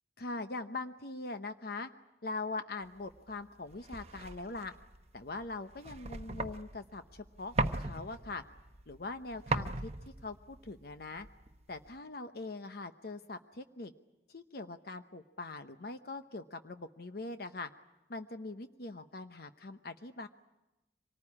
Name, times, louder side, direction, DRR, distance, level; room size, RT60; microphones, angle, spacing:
voice 1, 0.2-1.9 2.2-4.7 5.1-8.4 8.9-9.9 10.2-11.3 11.7-13.9 14.3-17.7 18.1-20.3, left 3 dB, 60° left, 9 dB, 0.9 m, -42 dB
sound 1, 3.0-12.0, right 2 dB, 35° right, 1.0 m, -39 dB
25.0 x 19.0 x 9.8 m, 1.0 s
head